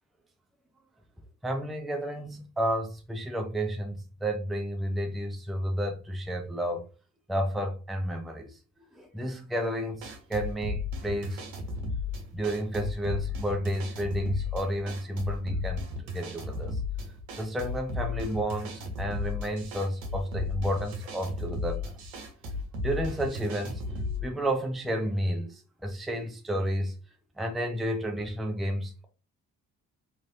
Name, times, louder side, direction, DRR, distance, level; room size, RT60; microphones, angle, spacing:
voice 1, 1.4-6.9 7.3-8.5 9.0-11.5 12.3-15.8 16.1-16.8 17.4-22.1 22.8-26.9 27.4-29.0, equal, ahead, 0.6 m, -31 dB
sound 1, 10.0-24.3, left 3 dB, 85° right, 0.8 m, -35 dB
3.0 x 2.7 x 2.6 m
hypercardioid pair, 50°, 42 cm